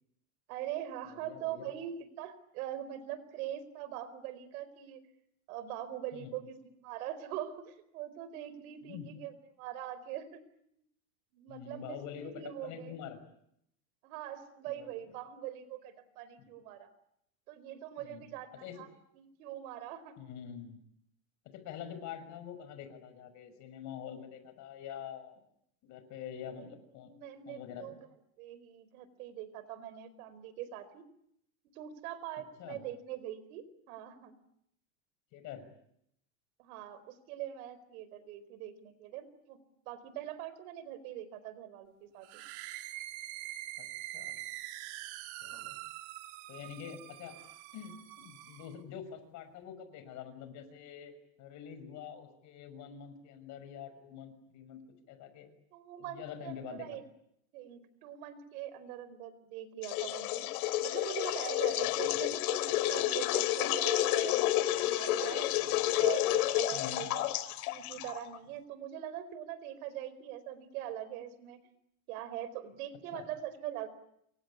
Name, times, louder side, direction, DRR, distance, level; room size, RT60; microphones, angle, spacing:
voice 1, 0.5-5.0 5.5-10.4 11.3-13.0 14.0-16.9 17.5-18.9 19.1-20.2 26.6-26.7 27.0-28.1 28.4-31.0 31.7-34.3 36.6-39.6 39.9-42.4 45.5-45.6 55.7-57.0 57.5-60.5 60.8-65.5 65.9-71.6 72.1-73.9, right 11 dB, 75° right, 15 dB, 4.6 m, -42 dB
voice 2, 1.0-1.7 6.1-6.4 8.8-9.1 11.5-13.2 14.7-15.0 16.4-16.5 18.0-18.3 18.6-18.8 20.2-20.8 21.4-25.4 25.8-27.1 27.5-28.0 32.6-32.8 35.3-35.7 43.8-43.9 44.1-44.4 45.4-45.8 46.5-47.4 47.7-51.1 51.4-55.5 56.0-57.0 62.1-62.2 66.7-67.1 73.1-73.2, left 8 dB, 40° left, 10 dB, 5.9 m, -46 dB
sound 1, 42.2-48.8, right 15 dB, 50° right, 2.4 m, -44 dB
sound 2, 59.8-68.4, left 14 dB, 80° left, 2.9 m, -30 dB
28.5 x 24.5 x 8.4 m, 0.74 s
cardioid pair, 175°, 44 cm